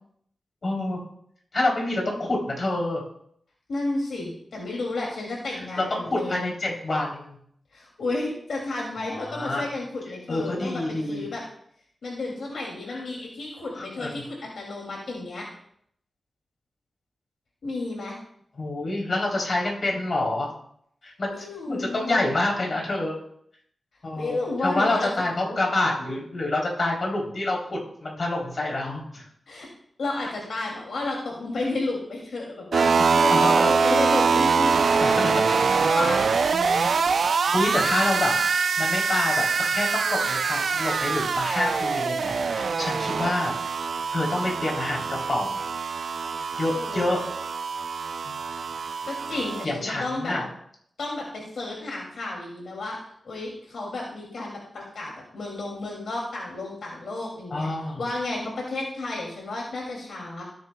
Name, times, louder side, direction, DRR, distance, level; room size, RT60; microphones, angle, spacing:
voice 1, 0.6-1.0 1.5-3.0 5.5-7.4 9.0-9.6 10.3-11.3 12.9-13.0 13.7-14.2 18.6-20.5 21.0-23.2 24.0-29.3 33.0-33.7 35.0-35.4 36.5-36.9 37.5-38.3 38.8-39.5 39.7-43.5 44.1-45.6 46.6-47.2 48.2-48.5 49.6-50.5 57.5-58.0, left 2 dB, 50° left, -2 dB, 3.3 m, -27 dB
voice 2, 3.7-6.4 7.7-10.8 11.1-11.4 12.0-15.5 17.6-18.2 21.3-22.2 24.2-25.1 29.5-29.7 30.0-36.2 46.7-47.2 49.0-50.4 51.0-53.0 53.2-57.7 58.0-60.4, left 2 dB, 80° left, -2 dB, 2.6 m, -32 dB
sound 1, 32.7-49.7, right 5 dB, 70° right, 0.5 m, -24 dB
17.0 x 9.5 x 2.3 m, 0.68 s
wide cardioid pair, 95°, 0 cm